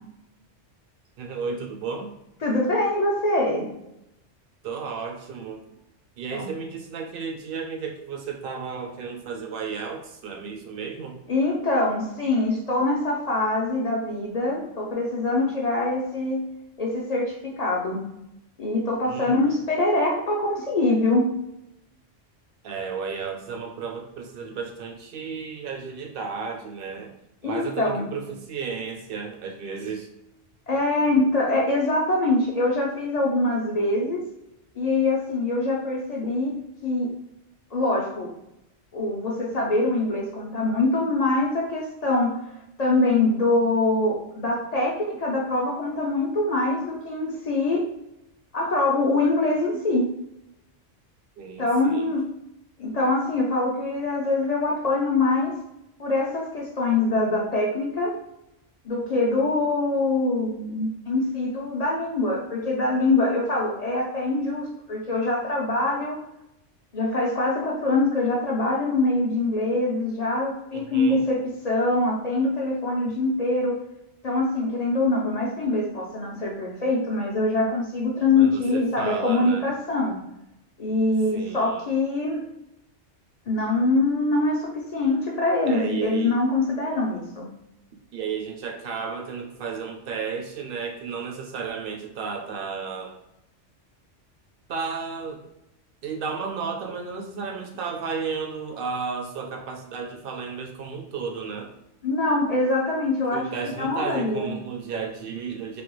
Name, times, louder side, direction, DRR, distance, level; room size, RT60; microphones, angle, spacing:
voice 1, 1.2-2.1 4.6-5.6 6.2-11.2 19.0-19.4 22.6-27.1 27.4-30.1 51.4-52.1 70.7-71.2 78.4-79.7 81.3-81.9 85.7-86.4 88.1-93.2 94.7-95.4 96.0-101.8 103.3-105.8, right 5 dB, 60° right, 2 dB, 0.6 m, -33 dB
voice 2, 2.4-3.7 6.3-6.5 11.3-16.4 16.8-18.0 18.6-21.3 27.4-28.1 30.7-34.2 34.8-36.5 36.8-37.1 37.7-38.3 38.9-42.4 42.8-47.8 48.5-50.1 51.6-52.3 52.8-55.6 56.0-58.1 58.8-66.2 66.9-73.8 74.2-80.2 80.8-82.4 83.5-87.5 102.0-103.5 103.8-104.5, left 2 dB, 55° left, -2 dB, 0.4 m, -24 dB
3.3 x 2.2 x 3.0 m, 0.86 s
omnidirectional pair, 1.3 m